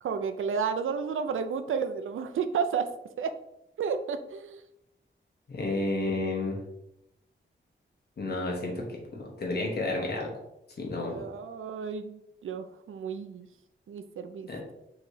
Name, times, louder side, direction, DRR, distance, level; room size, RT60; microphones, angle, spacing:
voice 1, 0.0-2.9 3.2-3.3 3.8-4.6 11.0-13.5 13.9-14.5, right 6 dB, 90° right, 9 dB, 0.4 m, -32 dB
voice 2, 5.5-6.6 8.2-10.3 10.8-11.2 14.5-14.6, left 2 dB, 55° left, -1 dB, 1.0 m, -31 dB
4.7 x 3.0 x 2.6 m, 0.81 s
wide cardioid pair, 175°, 20 cm